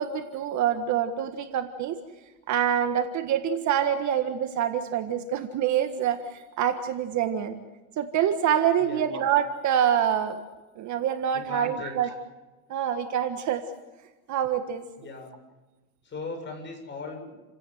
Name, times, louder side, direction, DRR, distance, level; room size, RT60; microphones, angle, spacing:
voice 1, 0.0-2.0 2.5-7.6 8.0-10.4 10.8-12.1 12.7-13.6 14.3-14.8, right 9 dB, 40° right, 7 dB, 1.6 m, -26 dB
voice 2, 8.8-9.2 11.3-12.1 15.0-15.3 16.0-17.3, left 3 dB, 25° left, 3 dB, 7.5 m, -39 dB
29.5 x 17.0 x 7.9 m, 1.1 s
supercardioid pair, 135°, 45 cm